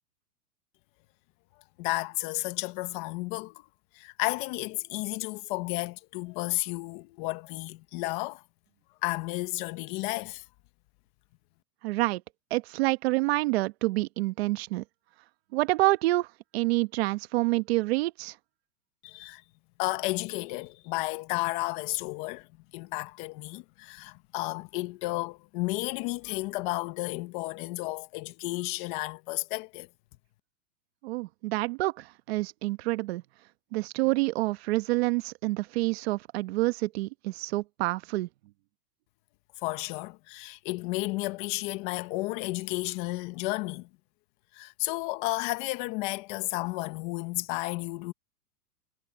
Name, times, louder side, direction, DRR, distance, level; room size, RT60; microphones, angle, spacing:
voice 1, 1.8-3.6 3.9-8.4 9.0-10.4 19.0-19.4 19.8-22.5 22.7-29.9 39.6-43.9 44.5-48.1, left 21 dB, 30° left, 1.2 m, -32 dB
voice 2, 11.8-12.2 12.5-14.8 15.5-16.3 16.5-18.3 31.0-33.2 33.7-38.3, right 20 dB, 40° right, 1.2 m, -27 dB
hypercardioid pair, 155°, 48 cm